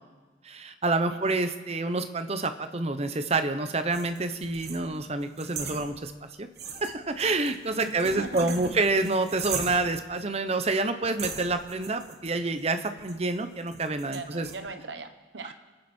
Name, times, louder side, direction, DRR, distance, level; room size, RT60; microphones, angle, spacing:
voice 1, 0.4-6.1 6.4-6.5 6.7-14.5, right 3 dB, 35° right, 9 dB, 0.9 m, -28 dB
voice 2, 1.1-1.5 7.8-8.7 14.0-15.5, right 3 dB, 75° right, 8 dB, 1.2 m, -39 dB
sound 1, 3.9-6.3 6.6-10.1 10.6-10.8 11.2-14.6, right 6 dB, 55° right, 1.4 m, -40 dB
25.0 x 9.6 x 4.4 m, 1.3 s
head